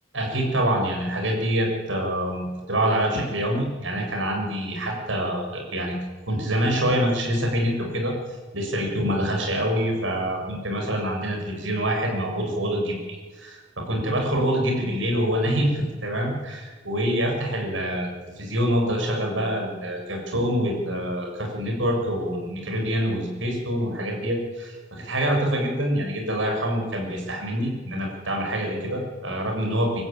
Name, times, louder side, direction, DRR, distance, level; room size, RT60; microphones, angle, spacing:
voice 1, 0.1-5.9 6.3-8.1 8.5-13.0 13.4-30.0, equal, 80° right, 1 dB, 7.1 m, -26 dB
24.5 x 13.5 x 9.3 m, 1.5 s
head